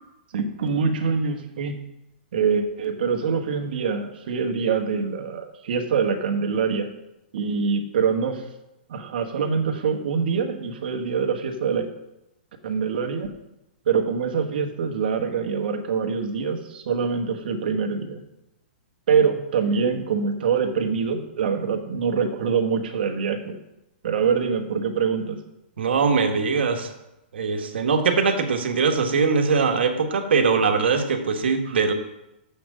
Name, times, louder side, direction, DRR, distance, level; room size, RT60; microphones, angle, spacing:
voice 1, 0.3-1.8 2.3-6.9 7.3-8.4 8.9-11.8 12.6-13.3 13.8-18.2 19.1-23.6 24.0-25.4, right 6 dB, 60° right, 5 dB, 1.3 m, -24 dB
voice 2, 25.8-26.9 27.3-31.9, right 5 dB, 85° right, 5 dB, 1.3 m, -21 dB
6.6 x 6.0 x 7.3 m, 0.90 s
hypercardioid pair, 160°, 6 cm